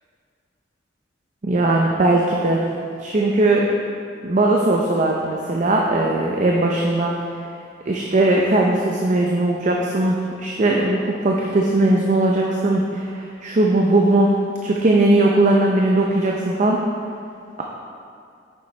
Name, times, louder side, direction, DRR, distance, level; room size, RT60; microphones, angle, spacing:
voice 1, 1.4-2.6 3.0-3.7 4.2-7.2 7.9-16.8, right 2 dB, 45° right, -1 dB, 0.6 m, -19 dB
9.1 x 6.8 x 3.2 m, 2.4 s
head